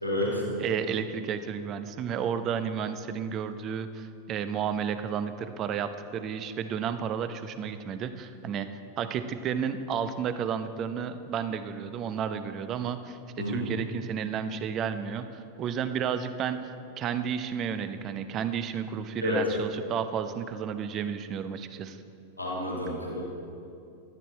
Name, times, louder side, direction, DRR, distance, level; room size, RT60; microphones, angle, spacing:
voice 1, 0.0-0.4 13.4-13.6 19.2-19.4 22.4-23.2, left 1 dB, 85° left, -3 dB, 2.3 m, -29 dB
voice 2, 0.6-8.7 9.0-22.0, right 7 dB, 35° right, 11 dB, 0.7 m, -32 dB
13.5 x 12.0 x 4.2 m, 2.6 s
figure-of-eight pair, 90°, 0 cm